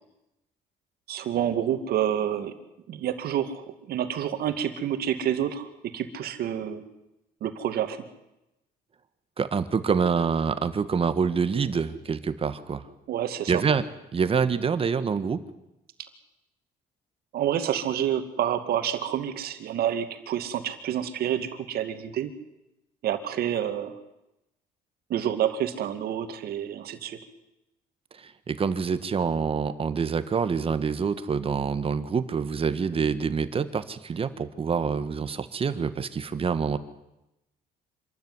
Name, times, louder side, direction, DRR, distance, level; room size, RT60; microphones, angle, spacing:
voice 1, 1.1-2.5 2.9-6.8 7.4-8.0 13.1-13.6 17.3-22.3 23.0-24.0 25.1-27.2, right 10 dB, 65° right, 8 dB, 2.4 m, -28 dB
voice 2, 9.4-12.8 13.5-13.8 14.1-15.4 28.1-36.8, right 6 dB, 35° right, 12 dB, 1.6 m, -26 dB
26.0 x 13.0 x 9.8 m, 0.92 s
cardioid pair, 110°, 17 cm